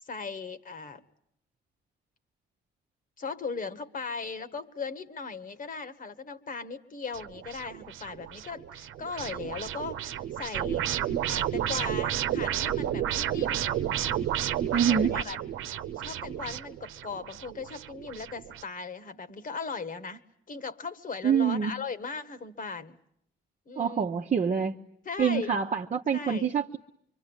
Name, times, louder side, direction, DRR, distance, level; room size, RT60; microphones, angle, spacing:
voice 1, 0.0-1.0 3.2-10.9 11.3-13.7 14.7-15.4 15.9-20.2 20.5-23.0 23.7-24.1 25.0-25.5 26.1-26.5, left 4 dB, 45° left, 13 dB, 1.7 m, -38 dB
sound 1, 7.1-18.6, right 11 dB, 90° right, 1.1 m, -32 dB
voice 2, 14.7-15.1 21.2-21.7 23.8-24.7 25.2-26.8, right 7 dB, 40° right, 1 dB, 1.1 m, -26 dB
25.0 x 24.5 x 9.0 m, 0.69 s
cardioid pair, 90°, 20 cm